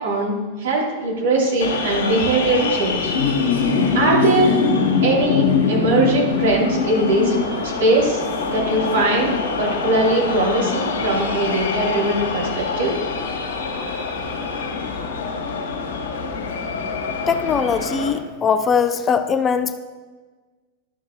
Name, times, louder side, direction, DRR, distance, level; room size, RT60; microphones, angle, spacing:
voice 1, 0.0-0.3 0.6-3.1 3.9-4.6 5.0-7.3 7.8-12.9, right 2 dB, 60° right, -5 dB, 2.8 m, -20 dB
sound 1, 1.6-18.1, left 5 dB, 60° left, 1.9 m, -23 dB
voice 2, 17.3-19.8, left 6 dB, 20° left, 10 dB, 0.4 m, -20 dB
12.0 x 6.4 x 2.8 m, 1.4 s
figure-of-eight pair, 90°, 0 cm